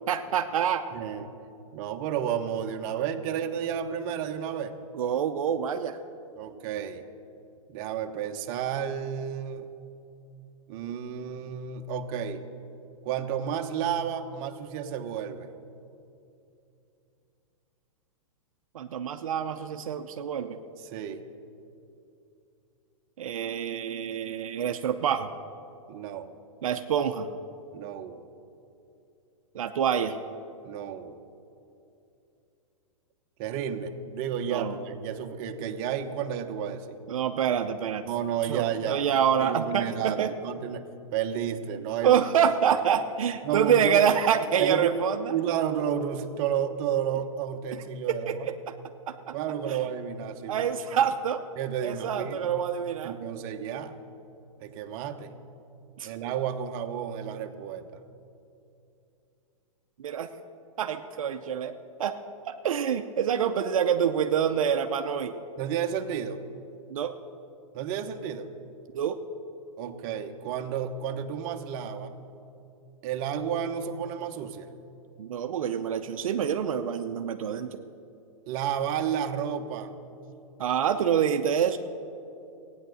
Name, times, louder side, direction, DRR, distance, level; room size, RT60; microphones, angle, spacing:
voice 1, 0.1-0.8 4.9-6.0 18.7-20.6 23.2-25.3 26.6-27.3 29.5-30.2 34.5-34.7 37.1-38.0 38.5-40.3 42.0-45.2 48.1-48.7 49.1-49.3 49.7-49.8 50.5-51.4 51.8-53.2 56.0-56.1 60.0-60.3 60.8-62.2 62.5-65.3 66.9-67.1 68.9-69.2 75.2-77.8 80.6-81.8, right 8 dB, 75° right, 7 dB, 0.8 m, -26 dB
voice 2, 0.9-1.3 1.7-4.8 6.4-7.0 7.7-9.7 10.7-12.4 13.0-15.5 20.8-21.2 25.9-26.3 27.7-28.2 30.6-31.2 33.4-37.0 38.1-42.2 42.7-42.8 43.4-44.1 44.6-44.9 45.3-48.5 49.3-51.1 51.6-52.6 53.0-54.0 54.6-55.3 56.0-57.9 65.6-66.4 67.7-68.5 69.8-72.2 73.0-74.7 78.5-79.9, right 8 dB, 40° right, 5 dB, 1.1 m, -31 dB
14.5 x 9.6 x 7.8 m, 2.7 s
hypercardioid pair, 130°, 18 cm